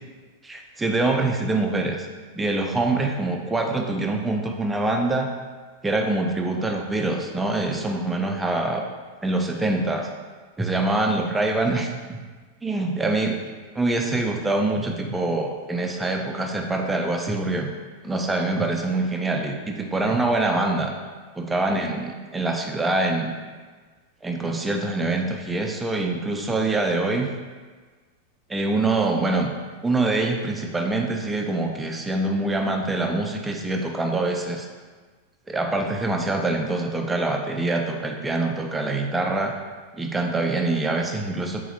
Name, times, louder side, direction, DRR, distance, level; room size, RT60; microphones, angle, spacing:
voice 1, 0.4-2.1 2.4-5.3 5.8-8.9 9.2-10.1 10.6-12.3 12.6-13.4 13.7-17.7 18.0-20.9 21.4-23.3 24.2-27.3 28.5-29.5 29.8-34.7 35.5-39.6 39.9-41.6, right 2 dB, 10° right, 2 dB, 0.3 m, -25 dB
3.9 x 2.0 x 2.9 m, 1.4 s
figure-of-eight pair, 90°, 0 cm